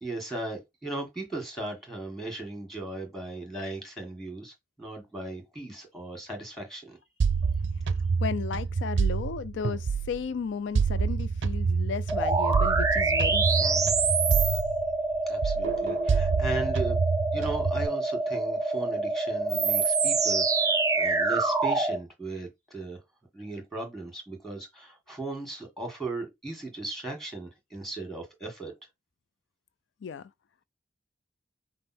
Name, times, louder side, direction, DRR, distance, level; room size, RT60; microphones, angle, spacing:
voice 1, 0.0-7.0 15.3-17.0 17.3-23.0 23.3-28.7, right 2 dB, ahead, 1.6 m, -37 dB
sound 1, 7.2-10.3 10.8-15.2 15.4-17.9, right 5 dB, 80° right, 0.4 m, -27 dB
voice 2, 8.2-13.8 30.0-30.3, left 6 dB, 75° left, 0.4 m, -34 dB
sound 2, 12.1-22.0, right 3 dB, 20° right, 0.5 m, -26 dB
5.4 x 2.0 x 4.2 m
head